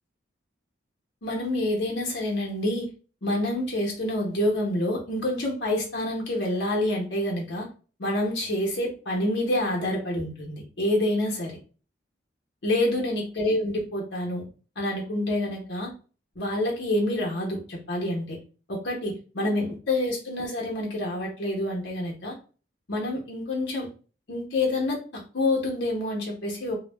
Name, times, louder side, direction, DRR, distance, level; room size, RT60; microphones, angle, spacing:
voice 1, 1.2-2.9 3.2-7.7 8.0-11.6 12.6-14.4 14.8-15.9 16.4-18.4 18.7-22.3 22.9-23.9 24.3-26.8, left 1 dB, 70° left, -2 dB, 0.8 m, -27 dB
2.3 x 2.0 x 3.3 m, 0.37 s
head